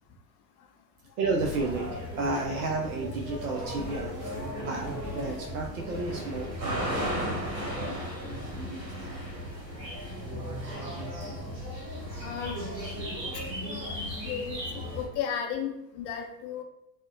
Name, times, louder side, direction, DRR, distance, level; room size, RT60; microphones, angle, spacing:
voice 1, 1.2-7.1 9.0-9.1, right 3 dB, 65° right, 0 dB, 0.5 m, -32 dB
sound 1, 1.4-15.1, equal, 85° right, 0.9 m, -35 dB
sound 2, 3.5-12.6 12.9-13.0, right 2 dB, 30° right, 0.8 m, -51 dB
voice 2, 12.2-12.6 13.3-13.4 14.2-14.6 14.9-16.6, left 8 dB, 30° left, 2 dB, 0.4 m, -34 dB
3.3 x 2.1 x 2.4 m, 0.82 s
figure-of-eight pair, 75°, 49 cm